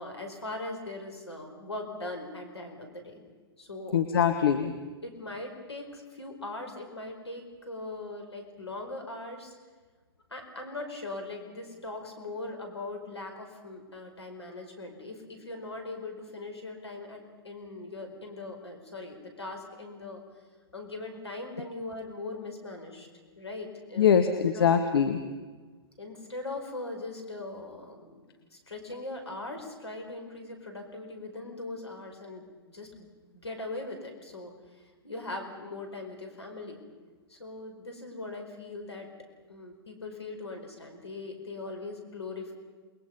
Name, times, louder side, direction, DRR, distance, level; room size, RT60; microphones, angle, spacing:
voice 1, 0.0-3.2 3.6-3.9 5.0-9.5 10.3-20.2 20.7-23.1 23.4-24.7 26.0-28.2 28.5-33.1 33.4-36.8 37.3-39.1 39.5-42.5, left 2 dB, 75° left, 3 dB, 4.9 m, -40 dB
voice 2, 3.9-4.7 24.0-25.2, left 7 dB, 60° left, 7 dB, 1.4 m, -23 dB
28.0 x 21.0 x 5.5 m, 1.4 s
figure-of-eight pair, 110°, 14 cm